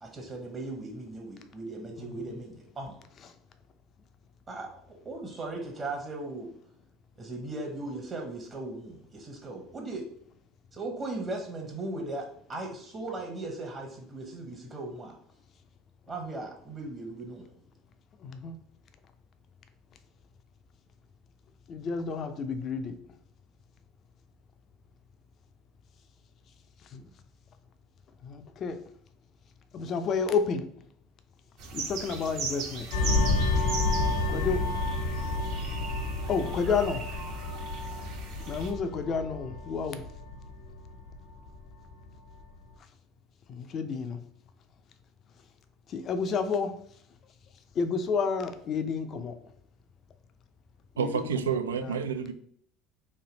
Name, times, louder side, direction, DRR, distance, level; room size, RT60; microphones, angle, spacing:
voice 1, 0.0-3.0 4.5-6.5 7.2-10.1 10.7-15.1 16.1-17.5, right 2 dB, 35° right, 0.9 m, -38 dB
voice 2, 2.0-2.3 18.2-18.6 21.7-22.9 26.9-27.0 28.2-28.8 29.7-30.7 31.7-32.9 34.3-34.6 36.3-37.0 38.5-40.0 43.5-44.2 45.9-46.7 47.8-49.4 51.0-52.0, left 5 dB, 45° left, 0.4 m, -30 dB
sound 1, 31.6-38.7, right 4 dB, 65° right, 1.0 m, -39 dB
sound 2, 32.9-41.9 42.3-42.5, left 3 dB, 75° left, 0.9 m, -30 dB
voice 3, 51.0-52.3, right 7 dB, 85° right, 0.3 m, -29 dB
3.2 x 2.6 x 3.8 m
hypercardioid pair, 75°, 0 cm